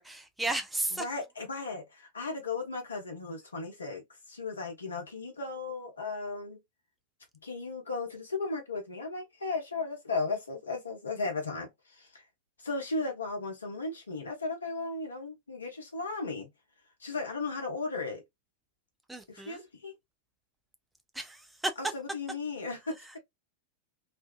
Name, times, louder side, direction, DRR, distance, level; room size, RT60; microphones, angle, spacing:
voice 1, 0.0-1.0 19.1-19.6 21.1-21.7, right 2 dB, 5° right, 0.5 m, -34 dB
voice 2, 0.9-6.6 7.4-12.3 12.6-16.5 17.0-18.2 19.3-19.9 21.8-23.0, left 3 dB, 75° left, 1.0 m, -36 dB
2.6 x 2.3 x 2.3 m
figure-of-eight pair, 90°, 0 cm